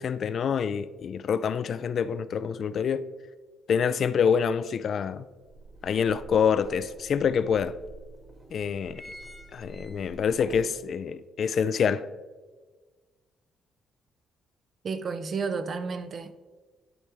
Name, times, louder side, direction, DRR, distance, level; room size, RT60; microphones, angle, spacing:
voice 1, 0.0-3.0 3.7-5.3 5.8-7.7 8.5-9.0 9.5-12.1, left 7 dB, 60° left, 0.3 m, -26 dB
sound 1, 4.7-4.8 5.3-6.4 7.1-7.2 7.4-7.5 8.2-8.4 8.7-10.5 10.9-11.0, left 1 dB, 5° left, 0.9 m, -48 dB
sound 2, 5.4-10.7, right 3 dB, 20° right, 1.6 m, -48 dB
voice 2, 14.8-16.3, right 5 dB, 50° right, 0.6 m, -31 dB
11.5 x 4.5 x 3.4 m
cardioid pair, 90°, 0 cm